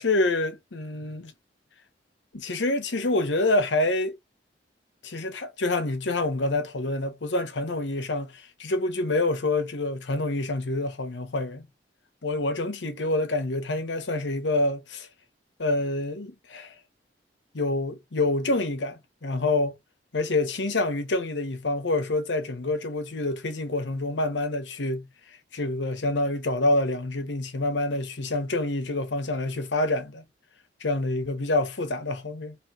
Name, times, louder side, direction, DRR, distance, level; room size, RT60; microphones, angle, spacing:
voice 1, 0.0-1.3 2.3-4.2 5.0-11.7 12.2-15.1 15.6-16.7 17.5-19.8 20.1-25.1 25.5-30.2 30.8-32.6, left 2 dB, 80° left, 1.0 m, -27 dB
3.2 x 3.0 x 4.6 m
head